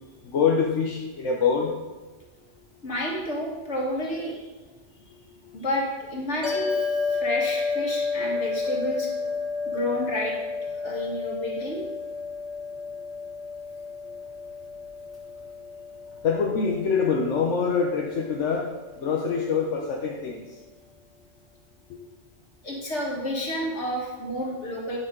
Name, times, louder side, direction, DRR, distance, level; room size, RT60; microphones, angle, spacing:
voice 1, 0.2-1.7 5.4-5.5 16.2-18.7 19.0-20.4, left 5 dB, 90° left, -1 dB, 1.2 m, -25 dB
voice 2, 2.8-4.4 5.5-9.1 9.7-10.4 10.7-11.8 22.6-25.0, left 1 dB, 75° left, -2 dB, 2.3 m, -30 dB
sound 1, 6.4-18.9, left 4 dB, 30° left, 2.3 m, -31 dB
8.7 x 8.0 x 3.8 m, 1.3 s
omnidirectional pair, 1.2 m